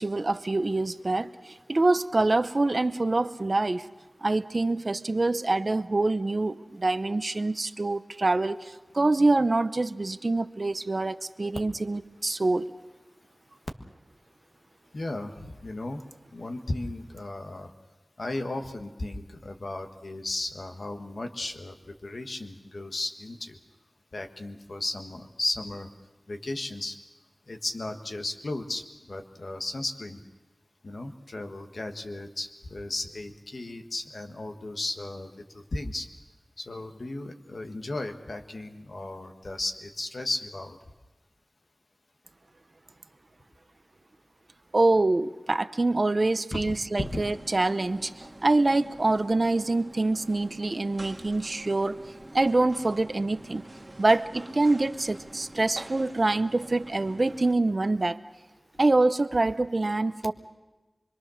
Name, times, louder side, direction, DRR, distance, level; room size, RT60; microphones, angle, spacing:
voice 1, 0.0-3.9 4.2-12.7 44.7-52.0 52.3-53.6 54.0-58.2 58.8-60.3, right 2 dB, 50° right, 12 dB, 0.7 m, -25 dB
voice 2, 14.9-16.0 16.3-17.7 18.2-21.8 22.0-23.6 24.1-25.9 26.3-27.0 27.5-30.2 30.8-36.1 36.6-40.8 46.5-47.2, left 2 dB, 70° left, 5 dB, 1.6 m, -35 dB
sound 1, 46.9-57.5, right 1 dB, 25° right, 1.8 m, -46 dB
25.5 x 22.5 x 6.4 m, 1.1 s
wide cardioid pair, 75°, 0 cm